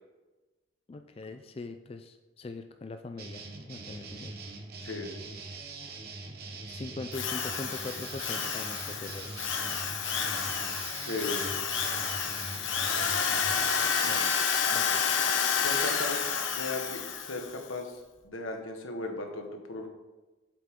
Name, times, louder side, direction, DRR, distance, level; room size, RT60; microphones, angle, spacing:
voice 1, 0.9-4.4 6.7-9.4 14.0-14.3 14.7-15.0, left 3 dB, 30° left, 7 dB, 0.3 m, -42 dB
sound 1, 3.2-13.9, right 3 dB, 50° right, 1.1 m, -42 dB
voice 2, 4.8-5.1 11.0-11.6 15.6-19.9, left 2 dB, 85° left, 3 dB, 1.4 m, -37 dB
Drill, 7.1-17.5, left 6 dB, 65° left, 0.9 m, -30 dB
8.5 x 7.6 x 3.7 m, 1.2 s
head